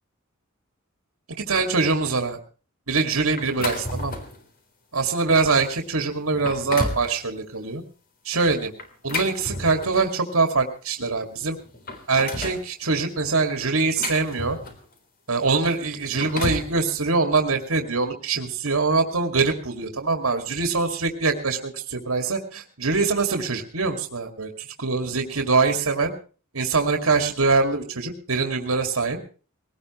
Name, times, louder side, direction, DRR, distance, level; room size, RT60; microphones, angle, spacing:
voice 1, 1.4-2.4 2.9-4.2 4.9-7.8 8.2-8.7 9.0-11.6 12.1-14.6 15.3-26.1 26.5-29.2, right 4 dB, 80° right, 5 dB, 2.4 m, -23 dB
sound 1, 3.4-4.4 5.0-5.1 5.8-5.9 6.3-7.1 8.8-10.1 11.2-11.3 11.6-12.6 13.5-14.9 15.9-16.7, left 2 dB, 45° left, 3.8 m, -32 dB
21.0 x 18.5 x 3.2 m, 0.38 s
head